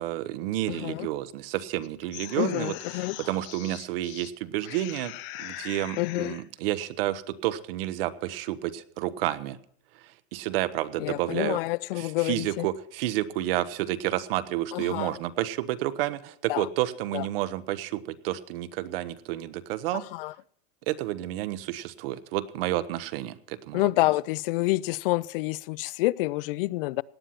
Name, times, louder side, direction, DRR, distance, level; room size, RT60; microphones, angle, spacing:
voice 1, 0.0-5.1 5.4-9.6 10.3-11.6 12.0-20.1 20.9-23.9, right 14 dB, 65° right, 1.1 m, -30 dB
voice 2, 0.7-1.1 2.4-3.2 6.0-6.4 11.0-12.7 14.7-15.2 16.5-16.7 17.1-17.3 19.9-20.3 23.7-27.0, left 20 dB, 60° left, 0.5 m, -28 dB
sound 1, 1.8-4.3 4.6-6.5, left 15 dB, 35° left, 0.9 m, -41 dB
17.5 x 10.0 x 5.8 m
supercardioid pair, 170°, 31 cm